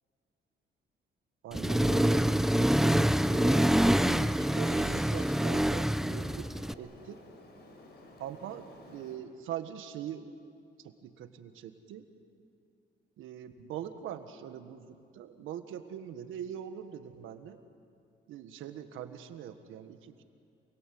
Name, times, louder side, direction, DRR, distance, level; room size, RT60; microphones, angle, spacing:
voice 1, 1.4-6.5 6.8-7.2 8.2-10.2 10.8-12.0 13.2-17.6 18.3-20.2, right 9 dB, 90° right, 9 dB, 1.6 m, -42 dB
Accelerating revving vroom, 1.5-6.7, right 1 dB, ahead, 0.6 m, -26 dB
Bird, 3.2-9.2, left 2 dB, 55° left, 4.9 m, -54 dB
28.0 x 21.5 x 7.8 m, 2.5 s
cardioid pair, 90°, 20 cm